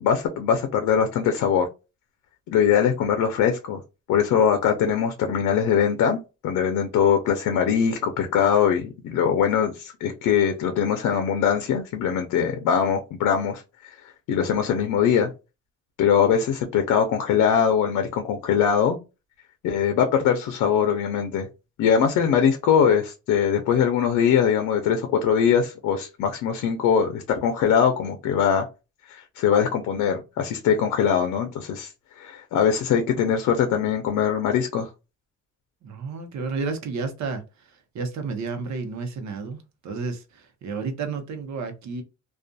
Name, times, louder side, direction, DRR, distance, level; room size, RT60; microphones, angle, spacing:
voice 1, 0.0-1.7 2.5-3.8 4.1-6.2 6.4-13.6 14.3-15.3 16.0-19.0 19.6-21.5 21.8-28.7 29.1-34.9, left 7 dB, 75° left, 0.6 m, -22 dB
voice 2, 35.8-42.0, right 4 dB, 65° right, 0.8 m, -32 dB
2.5 x 2.4 x 2.3 m
cardioid pair, 90°, 30 cm